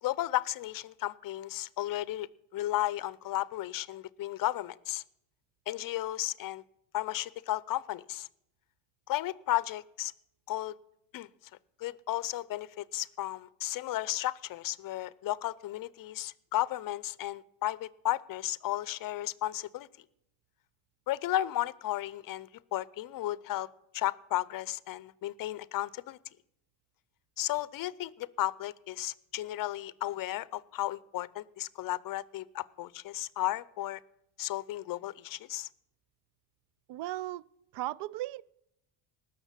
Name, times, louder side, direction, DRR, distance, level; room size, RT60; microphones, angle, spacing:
voice 1, 0.0-5.0 5.7-6.6 6.9-8.3 9.1-10.1 10.5-10.7 11.1-11.3 11.8-19.9 21.1-23.7 23.9-26.2 27.4-34.0 34.4-35.7, left 15 dB, 45° left, 0.6 m, -34 dB
voice 2, 36.9-37.5 37.7-38.4, right 16 dB, 60° right, 0.5 m, -36 dB
19.0 x 6.6 x 7.3 m
cardioid pair, 115°, 48 cm